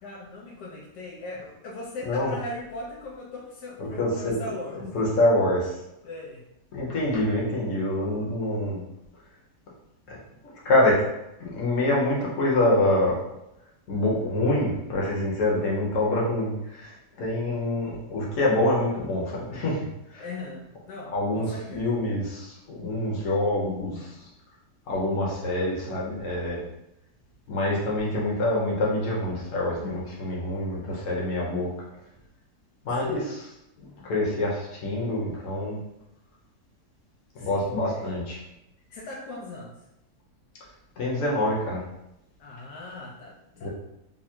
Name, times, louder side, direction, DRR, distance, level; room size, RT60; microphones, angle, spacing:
voice 1, 0.0-4.9 6.0-6.5 20.2-21.9 33.0-33.2 37.4-38.1 38.9-39.7 42.4-43.7, left 2 dB, 80° left, -2 dB, 1.2 m, -39 dB
voice 2, 4.0-4.4 4.8-5.8 6.7-8.8 10.1-10.2 10.4-11.0 11.5-13.2 13.9-19.8 20.1-20.2 21.1-24.3 24.9-26.6 27.5-31.7 32.8-33.5 33.8-35.8 37.3-38.4 41.0-41.8 43.6-43.7, left 1 dB, 55° left, -4 dB, 1.2 m, -26 dB
3.6 x 2.0 x 4.3 m, 0.86 s
omnidirectional pair, 1.8 m